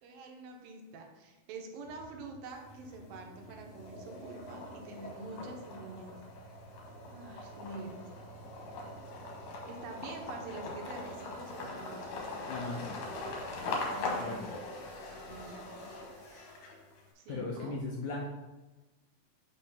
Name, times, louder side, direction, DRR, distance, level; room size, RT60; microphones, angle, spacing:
voice 1, 0.0-6.2 7.1-8.0 9.7-12.0 13.9-14.3 15.3-15.7 17.2-17.8, right 3 dB, 80° right, 2 dB, 2.5 m, -46 dB
sound 1, 1.8-14.0, right 3 dB, 45° left, 2.8 m, -55 dB
sound 2, 2.5-3.1 3.5-17.0, left 2 dB, 70° left, 2.6 m, -41 dB
sound 3, 10.8-16.6, right 1 dB, 20° right, 1.2 m, -58 dB
voice 2, 12.5-13.0 14.2-14.5 17.3-18.3, left 3 dB, 85° left, -2 dB, 1.6 m, -38 dB
5.8 x 4.4 x 5.4 m, 1.1 s
omnidirectional pair, 4.2 m